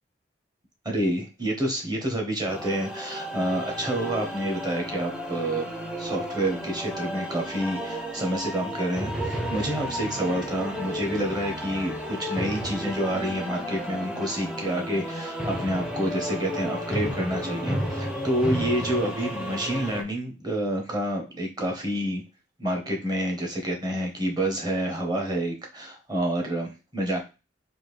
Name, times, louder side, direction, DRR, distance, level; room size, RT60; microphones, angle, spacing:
voice 1, 0.8-5.7 6.0-22.2 22.6-27.2, right 1 dB, 25° right, 1 dB, 1.0 m, -28 dB
sound 1, 2.5-20.0, equal, 5° right, 0.5 m, -33 dB
3.6 x 2.5 x 3.2 m, 0.28 s
head